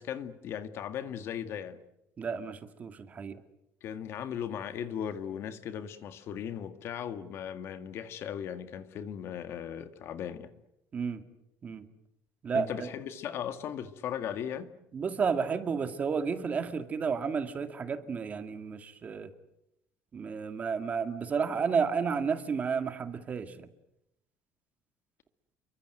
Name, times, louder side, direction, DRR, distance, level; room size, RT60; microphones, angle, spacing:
voice 1, 0.0-1.8 3.8-10.5 12.5-14.7, left 9 dB, 45° left, 1.9 m, -37 dB
voice 2, 2.2-3.4 10.9-11.2 11.6-11.9 12.4-12.9 14.9-19.3 20.1-23.7, right 5 dB, 25° right, 2.2 m, -32 dB
29.5 x 24.0 x 7.9 m
cardioid pair, 165°, 6 cm